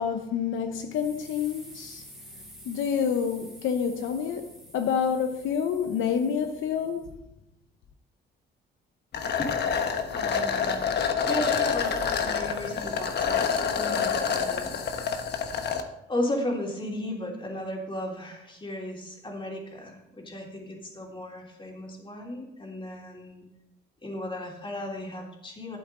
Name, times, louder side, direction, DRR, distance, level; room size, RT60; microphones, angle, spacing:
voice 1, 0.0-2.0 2.6-4.5 4.7-7.2, left 7 dB, 80° left, 0.8 m, -28 dB
sound 1, 0.9-7.1, right 1 dB, ahead, 2.5 m, -50 dB
sound 2, 9.1-15.8, left 6 dB, 60° left, 1.2 m, -27 dB
voice 2, 10.1-10.9 11.2-14.7 16.1-23.4 24.0-25.8, left 1 dB, 25° left, 3.2 m, -35 dB
12.0 x 8.4 x 3.8 m
cardioid pair, 90°, 20 cm